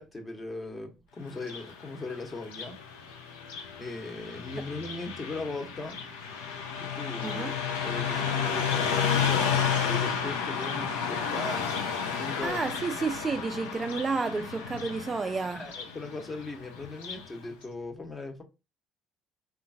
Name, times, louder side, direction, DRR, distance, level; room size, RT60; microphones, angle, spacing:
voice 1, 0.0-2.8 3.8-6.0 6.8-7.5 7.8-11.8 12.1-12.6 15.6-18.4, left 3 dB, 30° left, 1.0 m, -39 dB
Car passing by, 1.3-17.3, left 7 dB, 80° left, 0.5 m, -32 dB
voice 2, 7.2-7.6 12.4-15.7, right 4 dB, 30° right, 0.3 m, -31 dB
3.7 x 2.4 x 2.6 m
hypercardioid pair, 55°, 0 cm